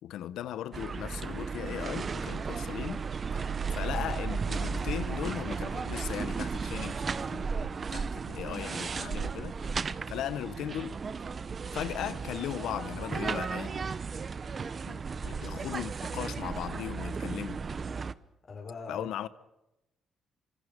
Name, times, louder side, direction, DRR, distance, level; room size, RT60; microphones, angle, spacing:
voice 1, 0.0-3.0 3.7-7.5 7.9-11.0 11.7-13.8 14.9-17.6 18.9-19.3, left 11 dB, 80° left, 1.2 m, -38 dB
sound 1, 0.7-18.1, right 5 dB, 40° right, 1.0 m, -35 dB
voice 2, 18.4-19.3, left 4 dB, 45° left, 5.3 m, -42 dB
29.0 x 25.0 x 5.4 m
cardioid pair, 90°, 0 cm